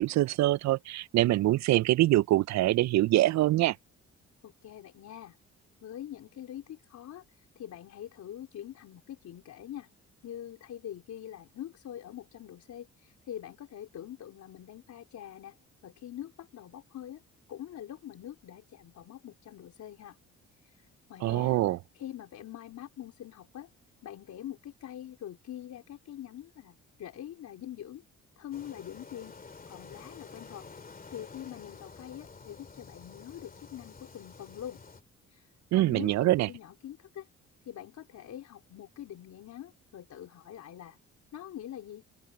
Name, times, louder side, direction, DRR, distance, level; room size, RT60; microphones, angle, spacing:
voice 1, 0.0-3.8 21.2-21.8 35.7-36.5, right 16 dB, 65° right, 0.4 m, -24 dB
voice 2, 4.4-5.4 5.8-9.9 10.2-15.6 15.8-17.2 17.5-20.2 20.6-23.7 24.0-28.0 28.4-29.4 29.7-30.7 31.1-34.8 35.3-37.3 37.6-41.0 41.3-42.0, left 11 dB, 70° left, 4.2 m, -44 dB
sound 1, 28.5-35.0, left 4 dB, 30° left, 2.5 m, -50 dB
open air
cardioid pair, 90°, 30 cm